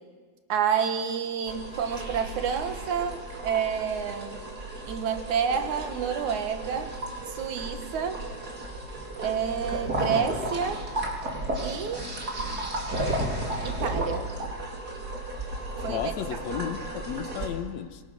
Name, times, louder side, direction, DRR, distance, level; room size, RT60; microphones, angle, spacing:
voice 1, 0.5-4.4 4.9-7.0 7.3-8.2 9.2-10.9 11.6-12.1 13.6-14.3 15.8-16.1, right 7 dB, 75° right, 7 dB, 2.9 m, -29 dB
sound 1, 1.5-17.5, right 1 dB, 30° right, 3.9 m, -33 dB
voice 2, 15.9-18.0, left 9 dB, 70° left, 10 dB, 2.1 m, -33 dB
26.5 x 23.0 x 6.3 m, 1.4 s
omnidirectional pair, 3.5 m